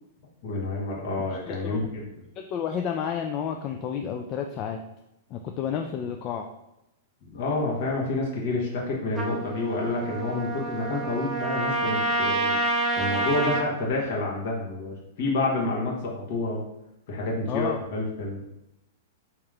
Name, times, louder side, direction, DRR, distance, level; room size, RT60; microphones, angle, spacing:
voice 1, 0.4-2.1 7.3-12.6 13.0-16.6 17.1-18.5, left 2 dB, 60° left, -3 dB, 1.1 m, -29 dB
voice 2, 1.5-1.9 2.4-4.8 5.3-6.5 17.5-17.8, left 8 dB, 35° left, 3 dB, 0.3 m, -31 dB
Trumpet, 9.2-13.7, right 2 dB, 20° right, 0.6 m, -28 dB
3.6 x 2.9 x 3.3 m, 0.87 s
hypercardioid pair, 130°, 0 cm